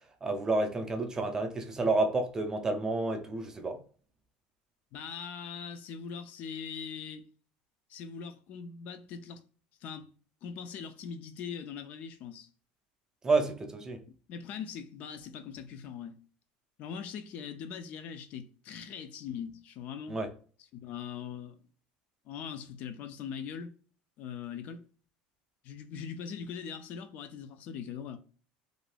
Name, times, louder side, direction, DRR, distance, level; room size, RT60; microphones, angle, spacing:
voice 1, 0.2-3.8 13.2-14.0 20.1-20.3, right 3 dB, 15° right, 0.4 m, -30 dB
voice 2, 4.9-7.3 7.9-9.4 9.8-10.1 10.4-12.5 14.1-16.2 16.8-20.2 20.7-21.6 22.3-23.7 24.2-24.8 25.6-28.2, left 7 dB, 50° left, 0.4 m, -41 dB
2.5 x 2.2 x 3.2 m
cardioid pair, 135°, 3 cm